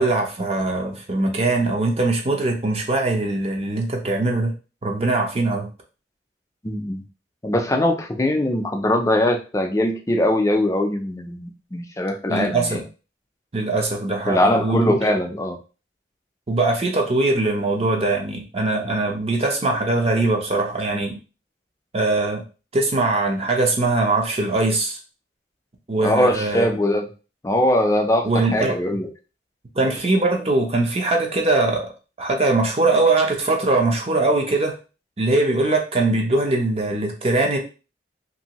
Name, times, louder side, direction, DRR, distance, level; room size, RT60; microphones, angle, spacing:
voice 1, 0.0-4.5 4.8-5.7 12.3-12.8 13.5-15.0 16.5-21.2 21.9-22.4 22.7-25.0 25.9-26.7 28.2-28.8 29.7-31.9 32.2-34.8 35.2-37.6, right 2 dB, 35° right, 2 dB, 0.6 m, -21 dB
voice 2, 6.6-7.0 7.4-12.8 14.3-15.6 26.0-27.1 27.4-28.3 28.5-29.1, left 1 dB, 15° left, 4 dB, 0.4 m, -21 dB
2.7 x 2.6 x 2.9 m, 0.33 s
head